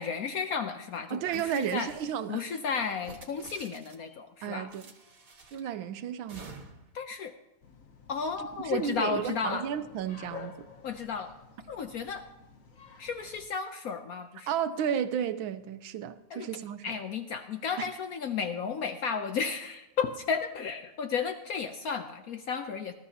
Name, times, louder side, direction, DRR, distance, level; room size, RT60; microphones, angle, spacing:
voice 1, 0.0-1.9 2.3-4.7 6.9-7.3 8.1-9.7 10.8-11.3 11.7-12.2 13.0-14.5 16.3-16.5 16.8-22.9, left 6 dB, 85° left, 0.7 m, -33 dB
voice 2, 1.1-2.5 4.4-4.9 5.5-6.5 8.4-10.7 14.5-17.0 17.8-17.9, right 9 dB, 70° right, 1.4 m, -33 dB
sound 1, 1.3-2.3 3.0-4.1 4.7-5.7 6.3-6.9, right 3 dB, 40° right, 1.9 m, -50 dB
Bark, 7.6-13.5, left 6 dB, 50° left, 1.0 m, -49 dB
20.5 x 13.5 x 2.8 m
omnidirectional pair, 2.4 m